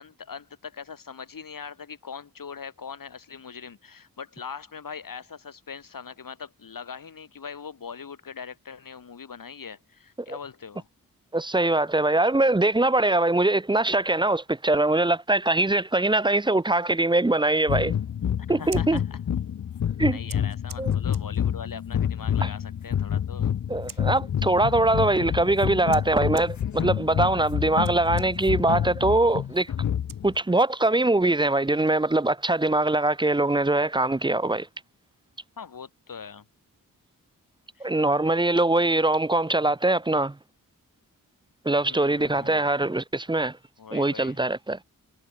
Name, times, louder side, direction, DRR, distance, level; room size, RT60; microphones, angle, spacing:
voice 1, 0.0-10.9 18.5-19.2 20.1-23.6 35.6-36.4 37.7-37.9 41.9-42.6 43.8-44.4, left 6 dB, 75° left, 4.8 m, -41 dB
voice 2, 11.3-17.9 18.5-19.0 20.0-20.2 20.8-20.9 22.4-22.5 23.7-29.7 30.2-34.7 37.8-40.4 41.6-43.6 43.9-44.8, right 2 dB, 15° right, 0.7 m, -22 dB
sound 1, 17.7-30.4, left 9 dB, 60° left, 0.6 m, -28 dB
Scissors, 18.5-30.8, right 6 dB, 75° right, 5.2 m, -51 dB
wide cardioid pair, 110°, 34 cm